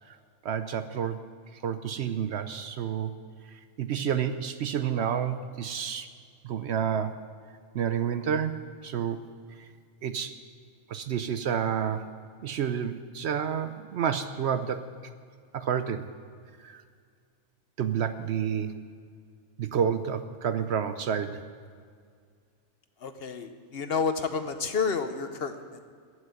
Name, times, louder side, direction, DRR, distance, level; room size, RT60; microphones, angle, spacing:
voice 1, 0.4-1.2 1.5-3.1 3.5-6.1 6.4-7.2 7.7-9.2 10.0-10.4 10.9-12.1 12.4-14.8 15.5-16.1 16.6-16.8 17.8-18.8 19.6-21.4, right 8 dB, 60° right, 10 dB, 0.8 m, -29 dB
voice 2, 23.0-25.8, left 5 dB, 55° left, 8 dB, 0.9 m, -30 dB
15.0 x 6.3 x 9.1 m, 2.1 s
omnidirectional pair, 1.4 m